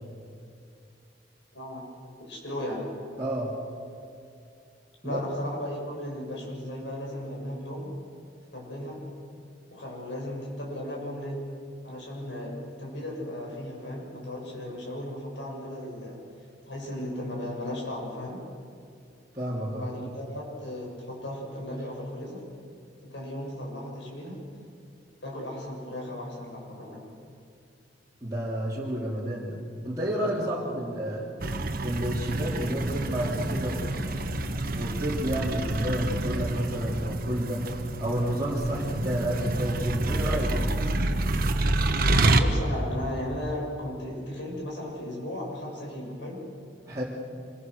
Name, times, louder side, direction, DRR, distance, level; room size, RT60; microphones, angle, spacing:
voice 1, 1.5-1.8 2.3-2.9 5.0-7.9 8.5-9.0 9.7-11.4 11.8-16.2 16.7-18.4 19.7-22.4 23.1-24.4 25.2-27.1 30.4-30.7 42.3-46.4, left 1 dB, 75° left, -2 dB, 6.8 m, -36 dB
voice 2, 3.2-3.5 5.0-5.2 19.3-19.9 28.2-29.6 29.8-31.2 31.8-34.1 34.7-37.6 38.0-40.7 46.8-47.0, equal, 20° right, -7 dB, 3.3 m, -30 dB
sound 1, 31.4-42.4, right 2 dB, 55° right, 1.3 m, -28 dB
25.5 x 22.5 x 6.6 m, 2.4 s
head